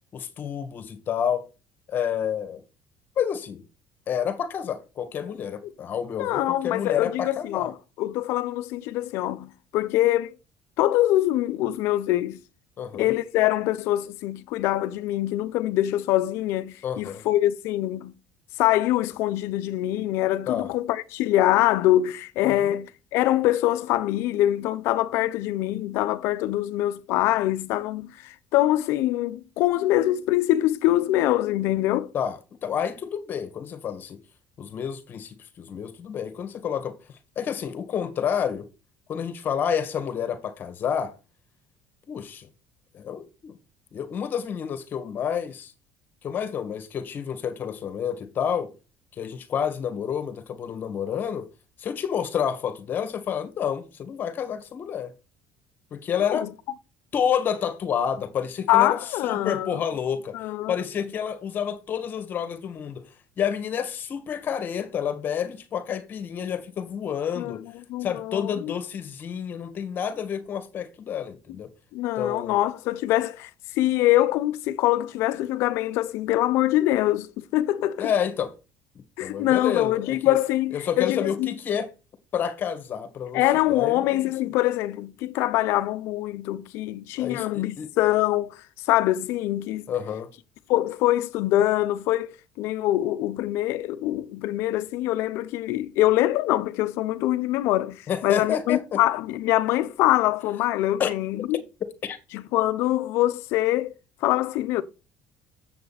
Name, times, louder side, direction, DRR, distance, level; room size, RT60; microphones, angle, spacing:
voice 1, 0.1-1.4 1.9-2.6 3.2-3.6 4.1-7.7 12.8-13.1 16.8-17.2 20.5-20.7 22.4-22.7 32.1-34.2 34.6-36.9 37.3-38.7 39.1-41.1 42.1-42.5 42.9-43.5 43.9-45.7 46.2-48.7 49.2-51.5 51.8-55.1 55.9-56.5 57.1-60.4 60.7-63.0 63.4-67.6 68.0-71.7 72.2-72.6 78.0-78.6 79.2-80.4 80.7-81.9 82.3-84.2 87.1-87.5 87.8-87.9 89.9-90.3 98.1-99.0 101.0-101.1 102.0-102.2, left 8 dB, 45° left, 1.7 m, -29 dB
voice 2, 6.2-10.3 10.8-12.4 12.9-18.1 18.6-32.1 56.2-56.5 58.7-59.8 60.3-60.8 67.4-67.6 67.9-68.7 71.9-73.5 73.8-78.1 79.2-81.5 83.3-88.6 88.9-89.9 90.7-101.6 102.3-103.9 104.2-104.8, left 15 dB, 75° left, 0.8 m, -24 dB
7.6 x 6.8 x 4.2 m
supercardioid pair, 95°, 4 cm